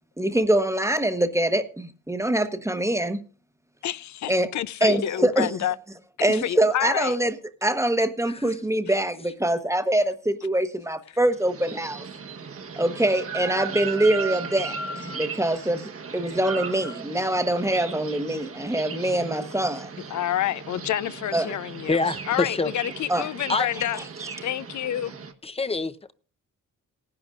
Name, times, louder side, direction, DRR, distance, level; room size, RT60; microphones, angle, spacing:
voice 1, 0.2-3.2 4.3-4.5 4.8-5.5 6.2-7.4 7.6-12.0 12.8-19.9 21.3-21.5 23.1-23.3, right 1 dB, 10° right, 1.1 m, -24 dB
voice 2, 3.8-5.7 6.3-7.2 20.1-22.0 22.3-24.0 24.4-25.1, left 11 dB, 65° left, 0.6 m, -28 dB
sound 1, 11.3-25.3, right 5 dB, 45° right, 1.3 m, -37 dB
voice 3, 21.9-22.7 23.5-23.7 25.4-26.1, left 3 dB, 20° left, 0.8 m, -25 dB
19.0 x 10.5 x 2.5 m
cardioid pair, 90°, 31 cm